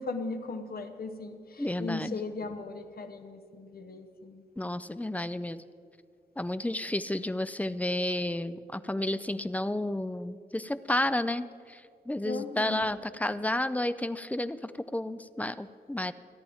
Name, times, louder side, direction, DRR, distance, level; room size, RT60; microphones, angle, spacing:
voice 1, 0.0-4.8 12.2-12.9, left 3 dB, 60° left, 7 dB, 0.9 m, -38 dB
voice 2, 1.6-2.2 4.6-5.6 6.4-16.1, left 1 dB, 10° left, 13 dB, 0.4 m, -31 dB
28.0 x 10.0 x 3.5 m, 2.3 s
wide cardioid pair, 145°, 17 cm